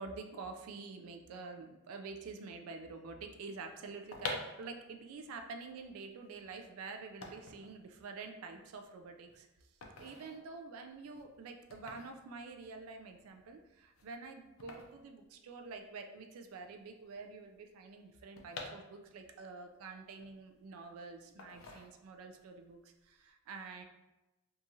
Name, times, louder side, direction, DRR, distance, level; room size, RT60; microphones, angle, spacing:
voice 1, 0.0-9.5 10.0-23.8, right 4 dB, 85° right, 6 dB, 0.3 m, -47 dB
sound 1, 3.9-16.0 16.3-16.4 16.5-19.4 19.8-20.8 21.4-22.4 22.7-23.0, left 3 dB, 70° left, 0.4 m, -48 dB
2.8 x 2.3 x 2.6 m, 1.0 s
head